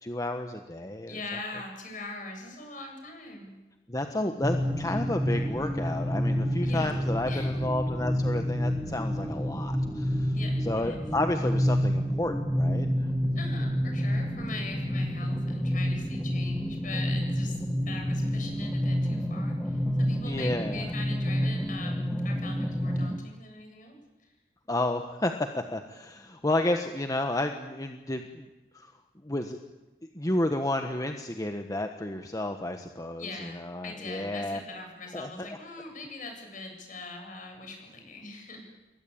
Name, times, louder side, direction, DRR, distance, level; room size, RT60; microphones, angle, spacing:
voice 1, 0.0-1.2 3.9-10.3 10.6-13.1 20.3-20.9 24.7-28.5 28.7-28.9 29.2-29.6 30.1-34.6 35.1-35.5, left 1 dB, 20° left, 5 dB, 1.4 m, -31 dB
voice 2, 1.1-3.5 6.6-6.9 7.3-7.6 10.3-11.0 13.3-17.6 17.8-24.0 33.2-38.7, left 3 dB, 50° left, 4 dB, 8.0 m, -41 dB
sound 1, 4.4-23.2, equal, 5° left, 2.2 m, -29 dB
29.0 x 22.0 x 8.8 m, 1.1 s
head